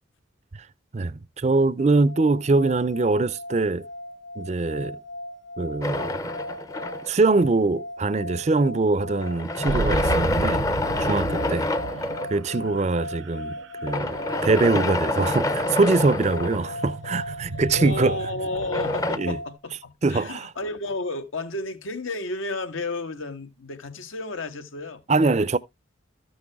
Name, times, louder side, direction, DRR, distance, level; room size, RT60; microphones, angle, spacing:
voice 1, 0.9-3.9 4.4-5.0 5.6-6.2 7.1-10.6 11.0-11.7 12.2-18.2 19.2-19.4 20.0-20.5 25.1-25.6, right 3 dB, 35° right, 0.4 m, -23 dB
sound 1, 1.8-19.6, left 1 dB, 60° left, 0.6 m, -38 dB
sound 2, 5.8-7.3 9.2-12.4 13.9-17.1 18.5-19.2, left 1 dB, 15° left, 0.5 m, -27 dB
sound 3, 9.7-18.9, right 3 dB, 80° right, 0.7 m, -34 dB
voice 2, 17.7-25.0, left 2 dB, 85° left, 1.5 m, -32 dB
13.5 x 6.1 x 3.5 m
head